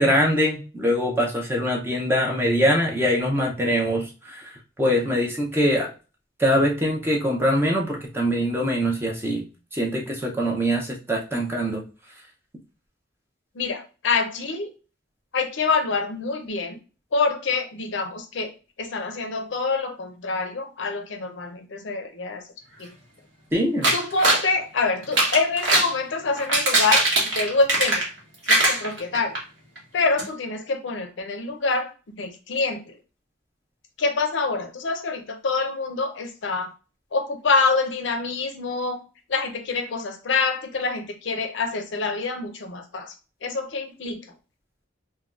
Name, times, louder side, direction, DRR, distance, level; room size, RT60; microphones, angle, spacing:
voice 1, 0.0-5.9 6.4-9.4 9.7-11.8 23.5-23.9, equal, 10° right, 0 dB, 0.5 m, -23 dB
voice 2, 13.6-14.7 15.3-16.8 17.1-18.5 18.8-22.4 22.8-22.9 23.9-27.1 27.3-28.0 28.5-29.4 29.9-31.9 32.2-32.9 34.0-36.7 37.1-39.0 39.3-43.1 43.4-44.2, left 4 dB, 65° left, 6 dB, 0.5 m, -26 dB
sound 1, 23.8-24.5 25.0-25.9 26.4-28.2 28.5-29.4 29.8-29.9 30.2-30.3, right 2 dB, 65° right, 1.1 m, -21 dB
3.3 x 2.2 x 2.3 m, 0.33 s
head